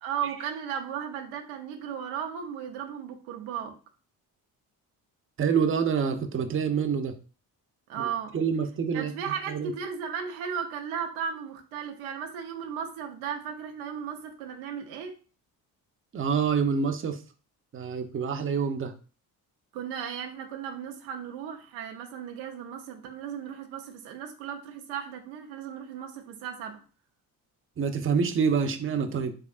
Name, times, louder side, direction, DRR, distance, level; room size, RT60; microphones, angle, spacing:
voice 1, 0.0-3.8 7.9-8.3 8.9-15.1 19.7-26.8, right 7 dB, 85° right, 3 dB, 0.8 m, -35 dB
voice 2, 5.4-7.1 8.0-8.1 8.3-9.7 16.1-17.2 17.7-18.9 27.8-29.3, right 6 dB, 25° right, 6 dB, 0.6 m, -27 dB
3.6 x 3.3 x 2.4 m, 0.36 s
hypercardioid pair, 50°, 46 cm